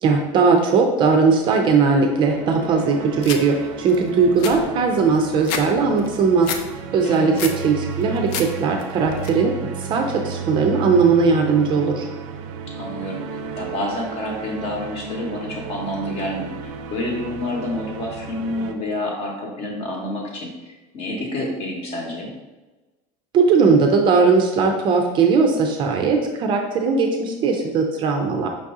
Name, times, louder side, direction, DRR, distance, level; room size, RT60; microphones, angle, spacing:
voice 1, 0.0-6.5 6.9-9.5 9.8-12.0 23.3-28.5, right 4 dB, 30° right, 3 dB, 0.4 m, -18 dB
sound 1, 1.7-18.7, right 6 dB, 85° right, 0.5 m, -33 dB
sound 2, 3.2-3.4 3.9-4.0 4.2-5.7 6.0-6.6 7.0-7.6 8.0-8.5 8.8-9.3, left 6 dB, 65° left, 0.5 m, -29 dB
voice 2, 7.0-7.5 12.7-13.2 13.5-22.3, left 1 dB, 40° left, 0 dB, 1.0 m, -29 dB
5.2 x 2.7 x 3.6 m, 1.2 s
cardioid pair, 170°, 15 cm